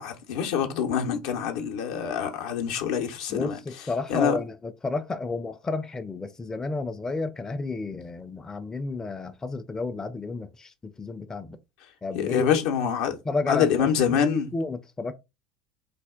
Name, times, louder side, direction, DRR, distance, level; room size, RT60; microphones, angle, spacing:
voice 1, 0.0-3.6 4.1-4.4 12.1-13.2 13.5-14.5, left 8 dB, 70° left, 0.6 m, -25 dB
voice 2, 3.3-11.6 12.0-12.5 13.3-13.9 14.3-15.1, left 3 dB, 15° left, 0.4 m, -31 dB
3.3 x 2.4 x 3.5 m
hypercardioid pair, 75°, 4 cm